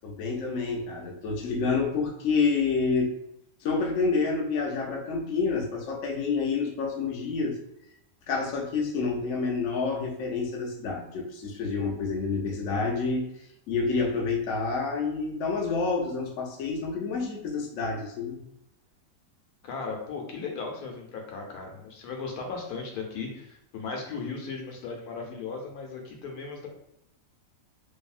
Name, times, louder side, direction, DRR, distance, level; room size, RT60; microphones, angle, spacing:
voice 1, 0.0-3.1 3.6-7.6 8.3-18.4, left 4 dB, 65° left, 0 dB, 0.9 m, -28 dB
voice 2, 19.6-26.7, left 4 dB, 85° left, 1 dB, 1.1 m, -36 dB
2.7 x 2.6 x 2.4 m, 0.80 s
omnidirectional pair, 1.6 m